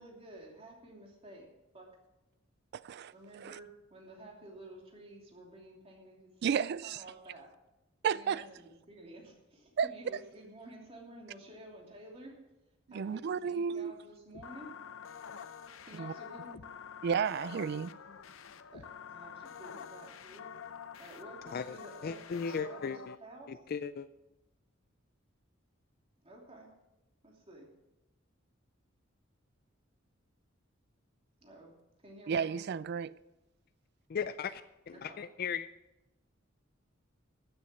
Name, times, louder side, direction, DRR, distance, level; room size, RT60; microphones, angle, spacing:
voice 1, 0.0-1.5 1.7-1.9 3.1-6.4 6.8-7.5 8.1-12.4 12.9-14.8 15.8-16.6 18.7-20.5 21.0-22.9 23.2-23.5 26.2-26.7 27.2-27.7 31.4-31.7 32.0-32.6 34.9-35.2, right 1 dB, 30° right, 3.0 m, -51 dB
voice 2, 2.7-3.6 6.4-7.0 8.0-8.4 9.8-9.9 12.9-13.9 15.9-16.1 17.0-17.9 32.3-33.1, right 7 dB, 55° right, 0.3 m, -32 dB
sound 1, 14.3-23.2, left 7 dB, 90° left, 0.6 m, -47 dB
voice 3, 21.5-23.2 23.5-24.1 34.1-35.7, left 6 dB, 50° left, 0.4 m, -37 dB
15.0 x 7.3 x 6.1 m
head